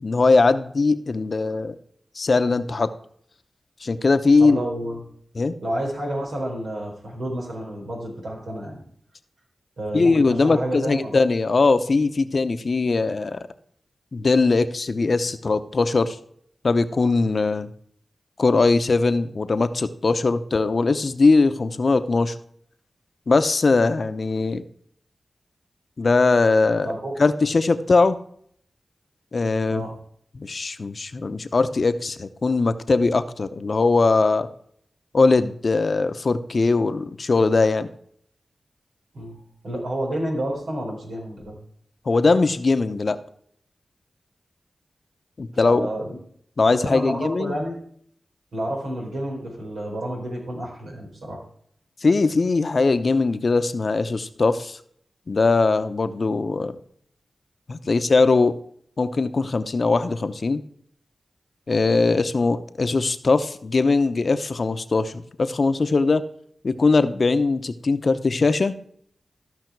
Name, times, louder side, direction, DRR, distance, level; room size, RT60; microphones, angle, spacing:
voice 1, 0.0-1.8 2.1-2.9 3.8-4.6 5.3-5.5 9.9-13.4 14.1-16.2 16.6-17.7 18.4-22.4 23.3-24.6 26.0-26.9 27.2-28.2 29.3-29.8 30.3-34.5 35.1-37.9 42.1-43.2 45.4-45.9 46.6-47.6 52.0-54.8 55.3-56.8 57.7-58.6 59.0-60.6 61.7-66.2 66.6-68.7, left 3 dB, 60° left, 11 dB, 0.8 m, -20 dB
voice 2, 4.4-5.0 5.6-8.8 9.8-11.1 26.8-27.1 29.7-29.9 39.1-41.6 45.6-46.2 46.7-47.8 48.5-51.4, right 1 dB, 85° right, -1 dB, 3.8 m, -30 dB
14.0 x 5.7 x 4.6 m, 0.65 s
cardioid pair, 40°, 0 cm